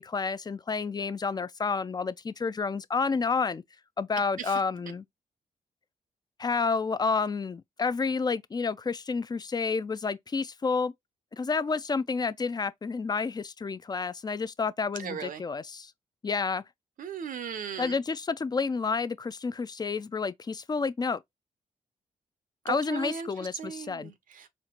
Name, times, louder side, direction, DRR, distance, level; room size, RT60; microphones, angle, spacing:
voice 1, 0.0-3.6 4.0-5.0 6.4-10.9 11.3-15.9 16.2-16.6 17.8-21.2 22.6-24.1, left 4 dB, 30° left, 0.4 m, -30 dB
voice 2, 15.0-15.4 17.0-18.0 22.7-24.5, right 7 dB, 70° right, 0.6 m, -37 dB
4.4 x 2.5 x 2.9 m
supercardioid pair, 55°, 15 cm